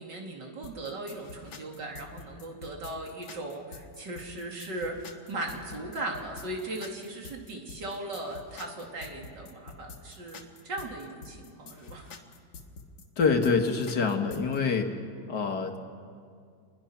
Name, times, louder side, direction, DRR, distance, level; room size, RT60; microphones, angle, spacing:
voice 1, 0.0-5.0 5.3-12.1, right 2 dB, 85° right, 0 dB, 3.3 m, -38 dB
sound 1, 0.6-14.6, left 4 dB, 90° left, 2.1 m, -47 dB
voice 2, 13.2-15.0 15.3-15.8, left 5 dB, 70° left, 4 dB, 2.2 m, -26 dB
27.0 x 21.5 x 5.9 m, 2.2 s
omnidirectional pair, 1.9 m